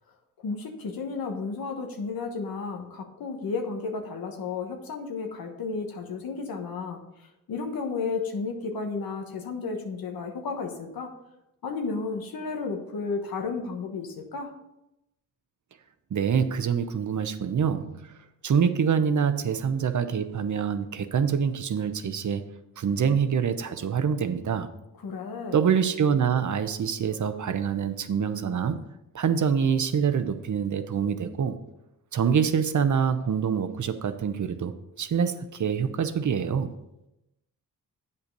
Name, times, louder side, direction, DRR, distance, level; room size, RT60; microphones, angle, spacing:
voice 1, 0.4-7.0 7.5-11.1 11.6-14.5 25.0-25.6, left 4 dB, 85° left, 3 dB, 1.3 m, -33 dB
voice 2, 16.1-18.1 18.4-22.4 22.8-24.7 25.5-28.8 29.1-31.6 32.1-34.7 35.0-36.7, right 7 dB, 60° right, 10 dB, 0.8 m, -25 dB
8.3 x 5.4 x 5.4 m, 0.89 s
cardioid pair, 65°, 35 cm